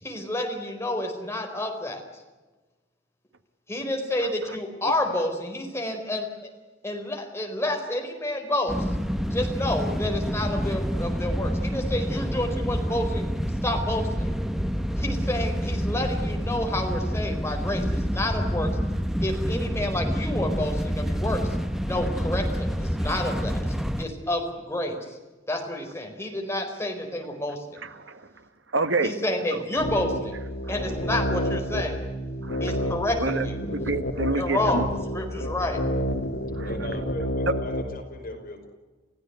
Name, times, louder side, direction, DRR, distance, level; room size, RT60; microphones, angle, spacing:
voice 1, 0.0-2.0 3.7-6.5 6.8-8.9 9.3-13.2 13.6-14.3 15.0-18.7 19.2-21.5 21.8-23.6 24.0-25.0 25.5-27.9 29.0-30.4 30.7-32.0 32.6-33.6 34.3-34.8 35.1-35.8, left 1 dB, 15° left, 3 dB, 4.4 m, -29 dB
sound 1, 8.7-24.0, equal, ahead, 1.2 m, -28 dB
voice 2, 27.8-28.3 28.7-29.1 29.5-29.6 32.4-32.9 33.2-33.5 33.7-34.9 35.4-35.5 36.5-36.7, right 3 dB, 75° right, 10 dB, 1.6 m, -28 dB
sound 2, 29.8-37.9, equal, 70° left, 3.5 m, -29 dB
voice 3, 36.6-38.7, left 1 dB, 50° left, 3 dB, 5.5 m, -38 dB
29.5 x 16.0 x 9.5 m, 1.2 s
head